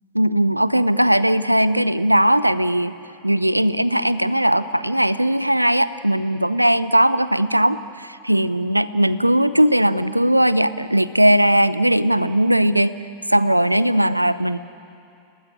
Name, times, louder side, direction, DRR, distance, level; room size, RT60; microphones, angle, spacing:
voice 1, 0.2-2.9 3.2-12.9 13.3-14.6, right 1 dB, 90° right, 15 dB, 0.8 m, -18 dB
28.5 x 19.0 x 10.0 m, 2.6 s
figure-of-eight pair, 90°, 0 cm